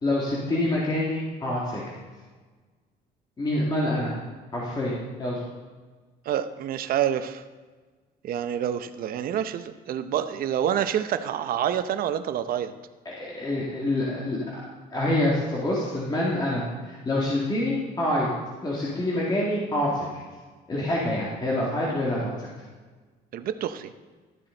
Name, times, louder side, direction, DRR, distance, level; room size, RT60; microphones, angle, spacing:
voice 1, 0.0-1.8 3.4-4.1 4.5-5.4 13.2-14.6 14.9-18.3 18.6-20.1 20.7-22.5, left 1 dB, 25° left, -6 dB, 2.3 m, -26 dB
voice 2, 6.3-7.4 8.2-12.7 23.3-23.9, right 10 dB, 60° right, 10 dB, 0.7 m, -27 dB
13.0 x 7.5 x 3.9 m, 1.4 s
cardioid pair, 110°, 17 cm